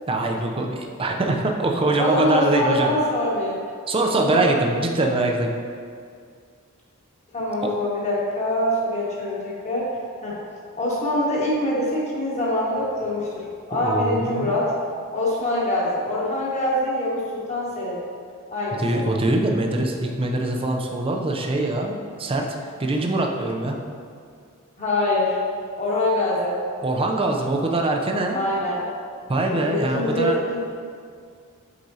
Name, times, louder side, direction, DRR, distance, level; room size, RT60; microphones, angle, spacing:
voice 1, 0.1-2.9 3.9-5.5 7.6-7.7 13.8-14.6 18.8-22.5 22.8-23.8 26.8-28.4 29.3-30.4, right 2 dB, 25° right, 1 dB, 0.5 m, -23 dB
voice 2, 2.0-3.6 4.2-4.5 7.3-9.9 10.2-10.4 10.8-14.7 15.1-18.0 18.5-19.0 24.8-25.4 25.8-26.6 28.3-28.8 29.5-30.6, left 1 dB, 30° left, -6 dB, 1.5 m, -24 dB
7.7 x 5.0 x 2.8 m, 2.2 s
head